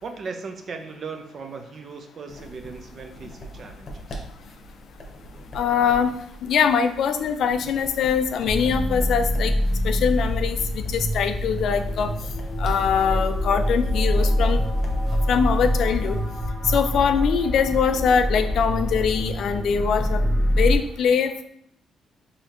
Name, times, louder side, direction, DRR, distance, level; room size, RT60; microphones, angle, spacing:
voice 1, 0.0-4.2, right 4 dB, 50° right, 5 dB, 0.5 m, -37 dB
sound 1, 2.3-16.3, equal, 50° left, 0.8 m, -41 dB
voice 2, 5.5-6.1 6.4-9.5 9.8-12.1 12.6-14.6 15.3-16.2 16.7-20.2 20.6-21.4, left 7 dB, 70° left, 8 dB, 0.3 m, -22 dB
sound 2, 8.4-20.8, equal, 5° right, 0.9 m, -25 dB
4.2 x 2.8 x 2.5 m, 0.70 s
cardioid pair, 90°, 0 cm